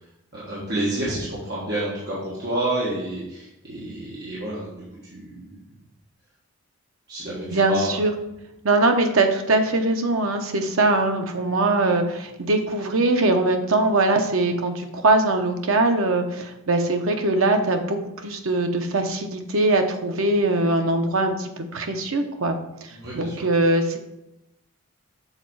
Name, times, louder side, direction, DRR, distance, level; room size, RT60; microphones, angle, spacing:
voice 1, 0.3-4.8 5.1-5.5 7.1-7.9 22.9-23.4, right 1 dB, 45° right, -7 dB, 1.4 m, -29 dB
voice 2, 7.5-8.1 8.6-24.0, right 2 dB, 65° right, 5 dB, 0.8 m, -22 dB
6.6 x 4.1 x 4.7 m, 0.88 s
head